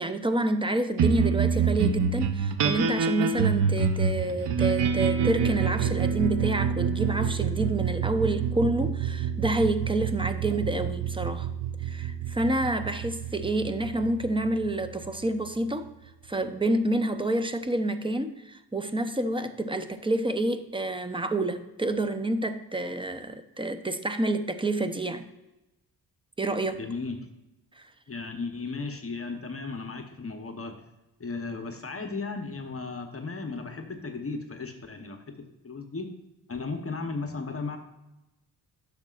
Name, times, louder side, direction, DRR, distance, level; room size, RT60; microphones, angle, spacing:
voice 1, 0.0-11.5 11.8-15.9 16.3-25.2 26.4-26.8 27.8-27.9, right 1 dB, 10° right, 9 dB, 0.6 m, -28 dB
sound 1, 1.0-15.7, right 6 dB, 80° right, 0.8 m, -27 dB
voice 2, 26.8-27.3 28.1-30.8 31.2-35.2 35.6-36.1 36.5-37.8, left 4 dB, 35° left, 5 dB, 0.9 m, -35 dB
10.5 x 6.6 x 2.4 m, 0.98 s
cardioid pair, 75°, 41 cm